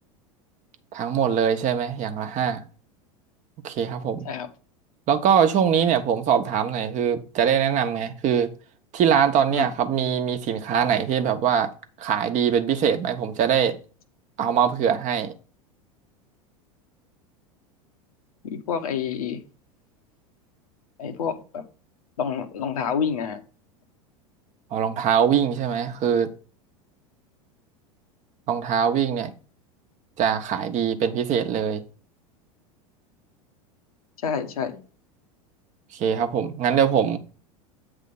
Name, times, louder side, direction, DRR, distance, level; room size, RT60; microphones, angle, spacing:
voice 1, 0.9-2.6 3.6-4.3 5.1-8.5 8.9-11.7 12.0-13.8 14.4-15.3 24.7-26.3 28.5-29.3 30.2-31.8 35.9-37.2, right 8 dB, 40° right, 1.0 m, -22 dB
voice 2, 18.4-19.4 21.0-21.6 22.2-23.4 34.2-34.8, left 7 dB, 75° left, 1.1 m, -28 dB
8.3 x 3.6 x 5.4 m
figure-of-eight pair, 85°, 19 cm